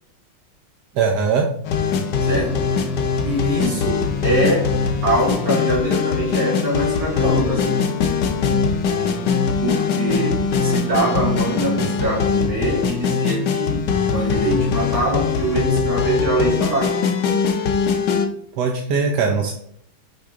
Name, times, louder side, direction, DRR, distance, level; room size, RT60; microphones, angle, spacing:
voice 1, 0.9-1.5 18.6-19.5, right 5 dB, 65° right, 2 dB, 1.2 m, -20 dB
sound 1, 1.6-18.3, left 5 dB, 60° left, 1.4 m, -21 dB
voice 2, 2.2-2.7 3.2-7.8 9.6-17.0, right 1 dB, 45° right, -5 dB, 3.2 m, -23 dB
6.7 x 5.1 x 3.7 m, 0.68 s
omnidirectional pair, 2.3 m